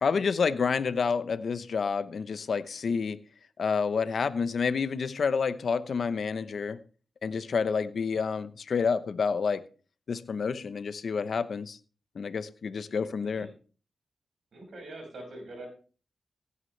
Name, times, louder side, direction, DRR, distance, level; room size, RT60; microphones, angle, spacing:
voice 1, 0.0-3.2 3.6-6.8 7.2-9.6 10.1-11.8 12.1-13.5, left 5 dB, 70° left, 0.8 m, -29 dB
voice 2, 13.2-13.5 14.5-15.7, right 1 dB, 75° right, 5.8 m, -44 dB
16.5 x 9.6 x 3.3 m
cardioid pair, 60°, 0 cm